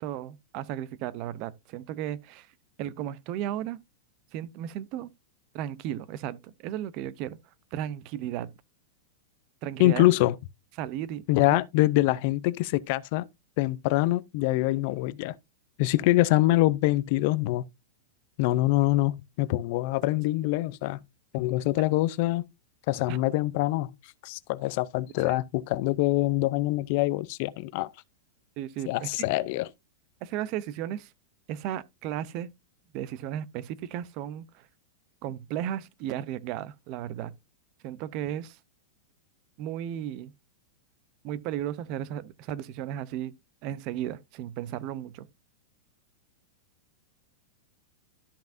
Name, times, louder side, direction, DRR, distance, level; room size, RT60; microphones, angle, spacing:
voice 1, 0.0-2.5 2.8-3.8 4.3-5.1 5.5-7.4 7.7-8.5 9.6-10.1 10.8-11.2 11.5-11.6 23.1-23.2 25.2-25.4 28.6-29.2 30.2-31.1 31.5-32.5 32.9-34.7 35.2-37.3 37.8-38.6 39.6-40.3 41.2-43.3 43.6-45.3, right 11 dB, 30° right, 0.6 m, -34 dB
voice 2, 9.8-10.4 11.3-13.2 13.6-15.3 15.8-17.6 18.4-21.0 21.3-22.4 22.9-23.9 24.2-27.9 28.9-29.7, left 17 dB, 35° left, 0.5 m, -24 dB
13.0 x 5.8 x 2.6 m
supercardioid pair, 175°, 0 cm